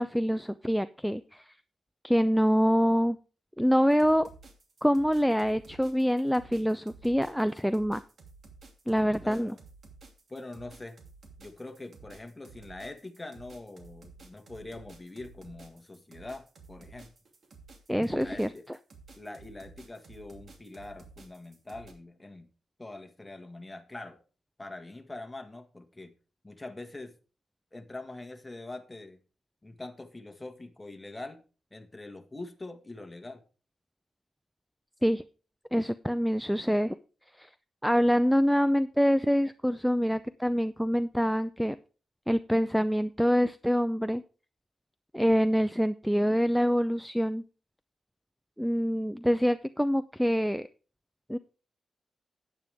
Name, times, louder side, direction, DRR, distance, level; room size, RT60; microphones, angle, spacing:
voice 1, 0.0-1.6 2.0-3.2 3.6-4.3 4.8-8.0 8.9-9.5 17.9-18.5 35.0-35.2 35.7-37.0 37.4-37.5 37.8-41.8 42.3-44.2 45.1-47.4 48.6-50.7 51.3-51.4, equal, ahead, 13 dB, 0.5 m, -25 dB
sound 1, 3.9-21.9, right 4 dB, 60° right, 2.6 m, -53 dB
voice 2, 9.2-9.6 10.3-11.0 11.4-17.1 18.1-18.6 19.1-22.5 22.8-24.2 24.6-26.1 26.4-27.1 27.7-29.2 29.6-31.4 31.7-33.4, left 2 dB, 15° left, 6 dB, 1.7 m, -43 dB
12.0 x 9.1 x 3.5 m, 0.36 s
cardioid pair, 70°, 0 cm